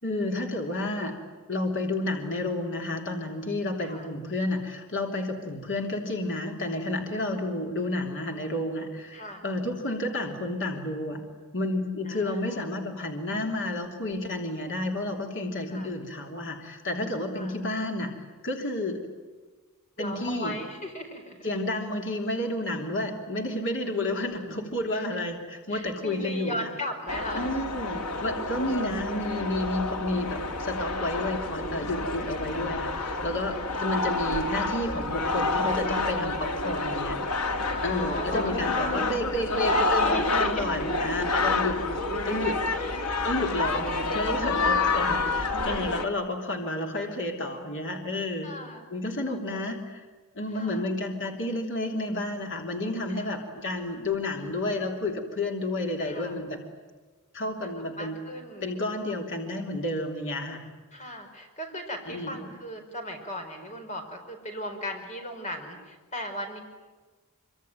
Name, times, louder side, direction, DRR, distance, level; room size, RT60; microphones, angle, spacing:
voice 1, 0.0-1.2 1.5-11.2 11.5-19.0 20.0-20.5 21.4-26.6 27.3-37.2 37.8-41.8 42.2-42.6 43.2-48.5 48.9-50.0 50.3-56.6 57.3-58.2 58.6-60.7 62.1-62.4, left 1 dB, 60° left, 2 dB, 3.3 m, -31 dB
voice 2, 9.1-9.5 12.1-12.7 15.7-15.9 17.3-17.6 20.0-21.5 24.9-25.0 25.7-27.5 33.7-33.9 37.6-39.0 39.4-40.8 42.8-43.0 44.4-45.1 48.4-48.8 49.3-49.7 50.5-50.9 53.1-53.4 56.0-56.4 57.6-58.7 60.9-66.6, left 1 dB, 35° left, 4 dB, 4.9 m, -37 dB
sound 1, 27.1-46.0, left 3 dB, 90° left, 2.2 m, -28 dB
25.0 x 25.0 x 9.2 m, 1.3 s
head